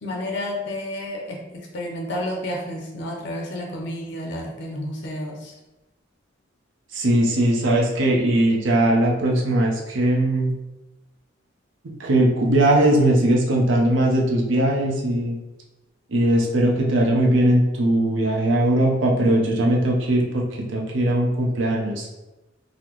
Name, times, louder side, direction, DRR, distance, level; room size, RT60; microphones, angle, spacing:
voice 1, 0.0-5.5, left 1 dB, 65° left, 0 dB, 0.5 m, -31 dB
voice 2, 6.9-10.5 12.0-15.4 16.1-22.1, right 1 dB, 70° right, -1 dB, 0.6 m, -20 dB
3.8 x 2.0 x 3.0 m, 1.0 s
head